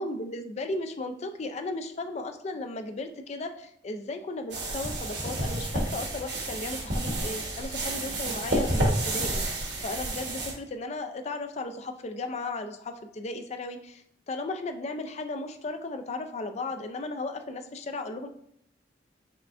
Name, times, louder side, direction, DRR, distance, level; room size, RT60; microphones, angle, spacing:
voice 1, 0.0-18.3, left 2 dB, 40° left, 7 dB, 0.4 m, -35 dB
sound 1, 4.5-10.5, right 1 dB, 70° right, 1.2 m, -30 dB
5.6 x 3.3 x 2.5 m, 0.70 s
head